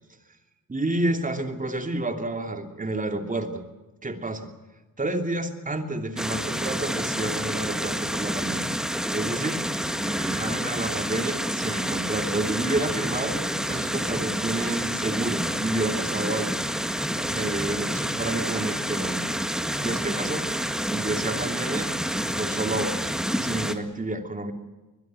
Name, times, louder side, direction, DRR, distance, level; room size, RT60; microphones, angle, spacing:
voice 1, 0.7-3.6 4.0-4.5 5.0-8.7 9.1-9.7 10.0-16.6 17.1-19.2 19.8-20.5 20.9-21.9 22.3-24.5, right 2 dB, 25° right, 6 dB, 3.0 m, -30 dB
sound 1, 6.2-23.7, equal, ahead, 1.9 m, -28 dB
23.5 x 20.5 x 7.8 m, 1.1 s
cardioid pair, 100°, 34 cm